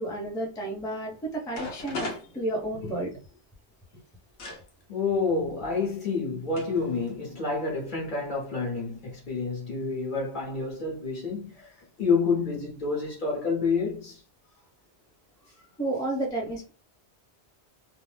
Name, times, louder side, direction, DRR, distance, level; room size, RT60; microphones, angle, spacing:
voice 1, 0.0-3.1 15.8-16.7, right 1 dB, 5° left, 0.5 m, -31 dB
sound 1, 1.1-1.2 1.5-3.1 4.4-4.6 5.7-5.8 6.6-6.8 7.1-7.5, left 2 dB, 90° left, 1.0 m, -37 dB
voice 2, 4.9-14.2, left 4 dB, 50° left, 1.1 m, -29 dB
2.6 x 2.0 x 3.2 m
omnidirectional pair, 1.1 m